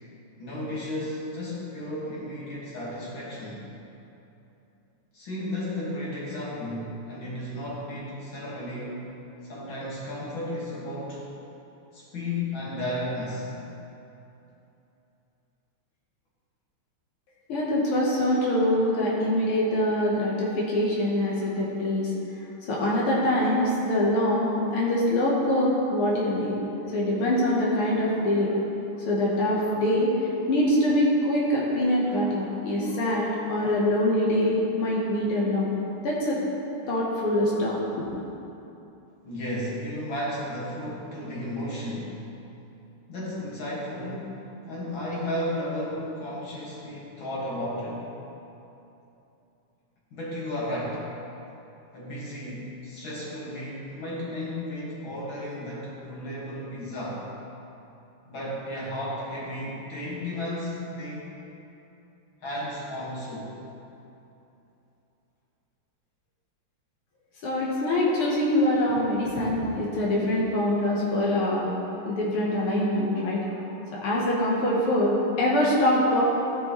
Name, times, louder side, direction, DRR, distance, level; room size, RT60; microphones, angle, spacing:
voice 1, 0.4-3.7 5.1-9.1 9.4-11.2 11.9-13.5 39.2-42.2 43.1-44.3 44.7-48.1 50.1-51.0 51.9-57.3 58.3-61.3 62.4-63.5, left 1 dB, 65° left, -6 dB, 2.6 m, -33 dB
voice 2, 17.5-22.1 22.7-26.6 26.9-28.6 29.1-30.1 30.5-35.7 36.0-36.4 36.9-38.0 67.4-71.7 72.0-76.2, left 1 dB, 85° left, -5 dB, 2.1 m, -24 dB
13.5 x 6.2 x 3.1 m, 2.9 s
omnidirectional pair, 2.4 m